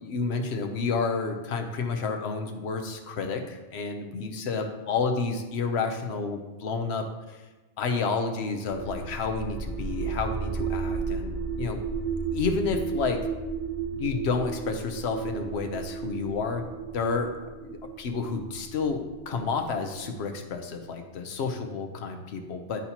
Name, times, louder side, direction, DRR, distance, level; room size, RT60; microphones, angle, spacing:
voice 1, 0.0-7.4 7.8-11.8 12.3-13.2 13.9-16.6 16.9-17.3 17.6-22.8, left 4 dB, 70° left, 4 dB, 1.0 m, -30 dB
sound 1, 8.6-20.4, right 5 dB, 40° right, 0.8 m, -34 dB
10.5 x 4.2 x 2.9 m, 1.1 s
omnidirectional pair, 1.1 m